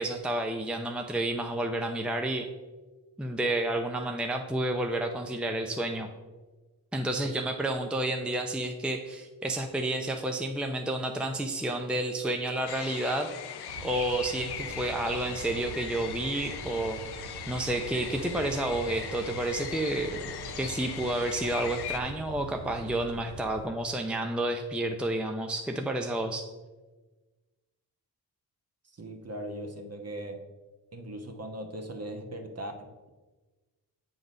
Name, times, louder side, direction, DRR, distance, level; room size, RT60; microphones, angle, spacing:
voice 1, 0.0-2.5 3.2-6.1 6.9-13.3 13.8-20.3 20.6-26.5, right 1 dB, 5° right, 3 dB, 0.6 m, -30 dB
sound 1, 12.7-22.0, left 9 dB, 70° left, 0.7 m, -40 dB
sound 2, 13.7-23.7, right 4 dB, 75° right, 0.7 m, -44 dB
voice 2, 28.8-30.4 30.9-33.1, right 1 dB, 40° right, 4 dB, 1.3 m, -39 dB
7.8 x 3.9 x 5.2 m, 1.2 s
cardioid pair, 50°, 40 cm